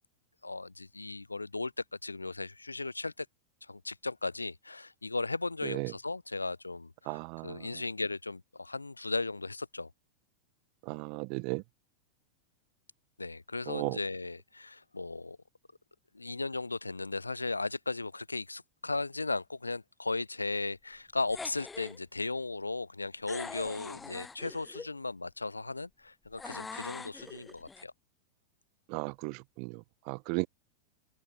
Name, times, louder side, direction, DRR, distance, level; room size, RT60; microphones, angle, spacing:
voice 1, 0.4-1.7 2.0-3.3 3.7-9.9 13.2-15.4 16.1-27.9, left 3 dB, 80° left, 1.0 m, -36 dB
voice 2, 5.6-5.9 7.1-7.8 10.8-11.6 13.7-14.0 28.9-30.5, right 38 dB, 45° right, 0.3 m, -36 dB
sound 1, 21.3-22.0 23.3-24.9 26.4-27.8, left 4 dB, 15° left, 4.1 m, -43 dB
figure-of-eight pair, 90°, 0 cm